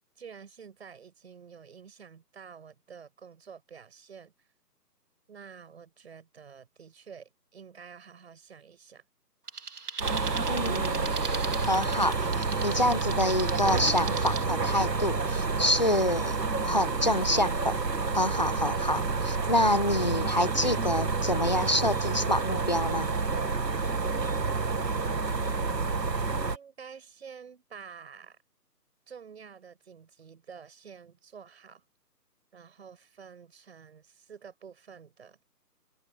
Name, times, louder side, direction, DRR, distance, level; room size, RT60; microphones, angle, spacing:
voice 1, 0.2-4.3 5.3-9.0 24.7-25.1 26.5-28.4 29.1-31.8 32.5-35.5, right 6 dB, 40° right, 7.3 m, -49 dB
sound 1, 9.5-14.4, right 5 dB, 65° right, 2.3 m, -39 dB
sound 2, 10.0-26.6, right 4 dB, 85° right, 2.3 m, -29 dB
voice 2, 10.5-11.1 11.7-17.7 18.1-23.1, left 1 dB, 25° left, 0.7 m, -27 dB
figure-of-eight pair, 165°, 49 cm